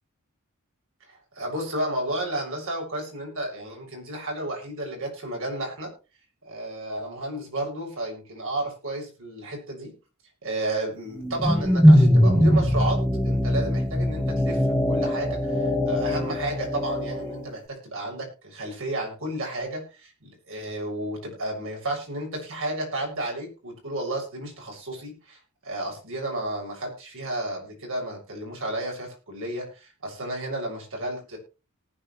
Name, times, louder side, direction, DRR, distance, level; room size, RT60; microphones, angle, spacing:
voice 1, 1.1-5.9 6.4-9.9 10.4-31.4, right 1 dB, 65° right, 1 dB, 6.9 m, -32 dB
sound 1, 11.2-17.5, equal, 5° right, 1.8 m, -21 dB
19.0 x 9.8 x 3.3 m, 0.31 s
head